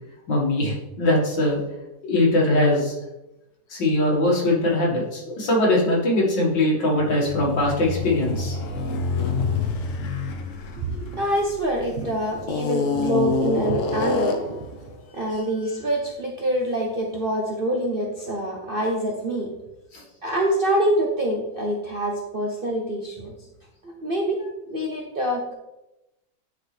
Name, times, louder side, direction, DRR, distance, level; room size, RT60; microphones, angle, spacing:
voice 1, 0.3-1.6 2.0-3.0 3.7-8.6, left 1 dB, 80° left, -3 dB, 2.5 m, -21 dB
sound 1, 7.0-11.8 12.4-14.6, left 4 dB, 55° left, 0.9 m, -27 dB
voice 2, 10.7-14.6 15.1-19.5 20.2-23.3 23.8-25.5, right 1 dB, 50° right, -1 dB, 0.7 m, -25 dB
9.9 x 4.1 x 3.3 m, 0.94 s
omnidirectional pair, 1.9 m